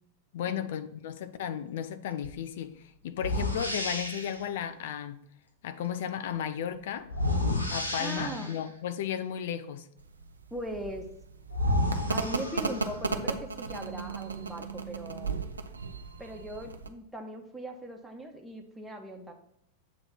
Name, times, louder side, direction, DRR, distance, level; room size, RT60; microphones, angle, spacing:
voice 1, 0.3-5.2 5.6-7.1 7.7-9.9, left 9 dB, 55° left, 0.6 m, -34 dB
sound 1, 2.2-2.4 3.2-4.4 7.1-8.7 11.0-11.1 11.5-13.1, left 1 dB, 80° left, 0.9 m, -31 dB
voice 2, 8.0-8.5 10.5-11.1 12.1-15.4 16.2-19.3, right 1 dB, 5° right, 1.1 m, -40 dB
sound 2, 10.0-16.9, right 4 dB, 75° right, 0.5 m, -36 dB
7.8 x 3.1 x 5.9 m
figure-of-eight pair, 90°, 0 cm